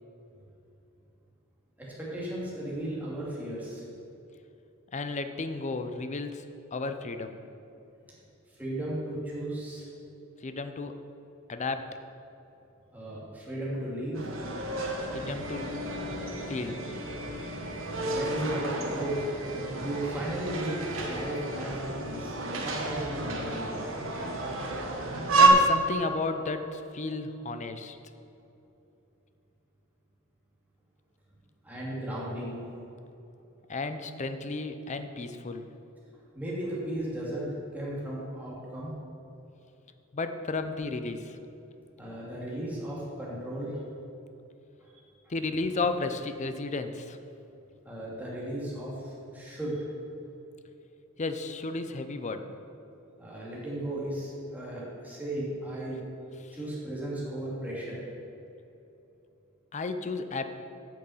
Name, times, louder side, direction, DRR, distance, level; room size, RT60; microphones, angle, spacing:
voice 1, 1.8-3.8 8.6-9.9 12.9-14.3 18.0-19.2 19.8-23.7 31.6-32.6 36.3-38.9 42.0-43.8 44.8-44.9 47.8-49.8 53.2-56.0 56.5-58.0, right 1 dB, 10° right, -6 dB, 2.6 m, -35 dB
voice 2, 4.9-6.4 6.7-7.4 10.4-10.9 11.5-11.9 15.1-15.8 16.5-16.8 25.3-28.0 33.7-35.7 40.1-41.4 45.3-47.2 51.2-52.4 59.7-60.5, left 3 dB, 35° left, 8 dB, 0.6 m, -33 dB
sound 1, 14.1-25.5, right 3 dB, 85° right, 1.4 m, -30 dB
8.7 x 6.4 x 7.2 m, 2.9 s
head